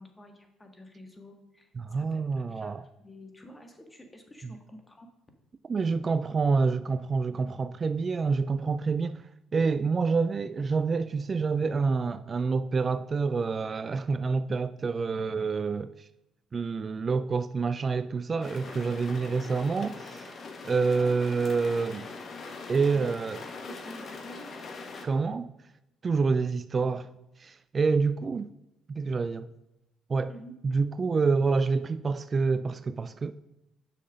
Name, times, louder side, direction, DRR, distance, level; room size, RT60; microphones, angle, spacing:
voice 1, 0.0-2.7 3.0-5.1 21.0-21.2 22.9-23.1 23.6-24.5 30.3-30.5, equal, 20° left, 1.7 m, -49 dB
voice 2, 1.8-2.8 4.4-4.5 5.7-16.1 16.5-20.4 20.6-22.1 22.7-23.4 25.0-25.5 26.0-27.1 27.4-28.5 28.9-29.5 30.1-30.3 30.6-33.3, right 4 dB, 40° right, 0.3 m, -27 dB
sound 1, 18.4-25.0, left 4 dB, 50° left, 1.2 m, -42 dB
6.5 x 5.8 x 5.2 m
hypercardioid pair, 55°, 0 cm